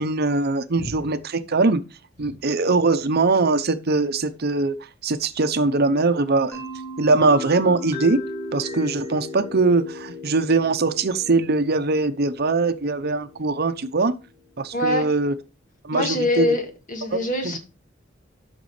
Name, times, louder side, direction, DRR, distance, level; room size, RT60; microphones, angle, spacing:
voice 1, 0.0-1.8 2.2-4.8 5.0-6.6 7.0-8.2 8.5-14.1 14.6-15.3 15.8-16.5 17.1-17.2 17.4-17.5, right 3 dB, 55° right, 0.7 m, -21 dB
sound 1, 6.5-14.2, left 2 dB, 15° left, 5.5 m, -36 dB
voice 2, 14.7-15.1 15.9-17.6, left 2 dB, 45° left, 1.8 m, -24 dB
12.5 x 6.0 x 3.2 m
head